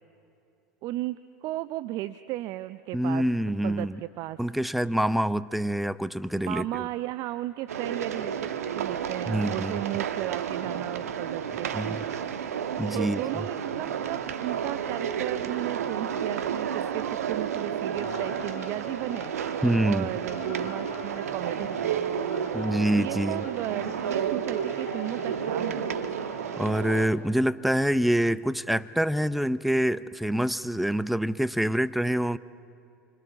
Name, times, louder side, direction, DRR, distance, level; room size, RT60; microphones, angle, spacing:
voice 1, 0.8-3.2 3.6-4.4 6.5-11.7 13.0-19.3 19.8-22.1 22.9-25.9, right 16 dB, 50° right, 13 dB, 0.6 m, -35 dB
voice 2, 2.9-4.0 4.4-6.9 9.3-9.8 11.7-12.0 12.8-13.2 19.6-20.1 22.5-23.4 26.6-32.4, right 1 dB, ahead, 16 dB, 0.7 m, -26 dB
sound 1, 7.7-27.1, right 8 dB, 80° right, 1.5 m, -31 dB
Singing / Musical instrument, 17.9-26.8, left 9 dB, 70° left, 2.5 m, -45 dB
29.0 x 25.5 x 7.1 m, 2.6 s
hypercardioid pair, 80°, 8 cm